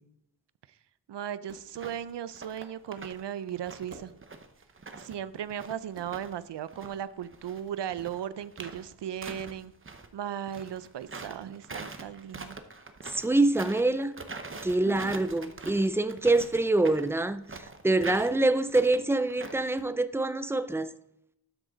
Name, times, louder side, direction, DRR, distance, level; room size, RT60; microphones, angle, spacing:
voice 1, 1.1-4.1 5.0-9.7 10.1-12.6 14.8-15.3, right 10 dB, 85° right, 0.5 m, -37 dB
sound 1, 1.5-1.7 3.9-4.2 5.9-6.2 7.9-8.2 9.2-9.5 11.9-12.2 14.9-15.2 17.9-18.2 19.7-19.9, right 3 dB, 50° right, 1.5 m, -50 dB
sound 2, 1.7-2.0 2.3-3.2 3.5-6.3 6.7-10.1 10.4-19.8, right 3 dB, 30° right, 0.8 m, -44 dB
voice 2, 13.1-14.1 14.6-20.9, right 2 dB, 5° right, 0.5 m, -25 dB
12.5 x 6.2 x 3.9 m
wide cardioid pair, 90°, 41 cm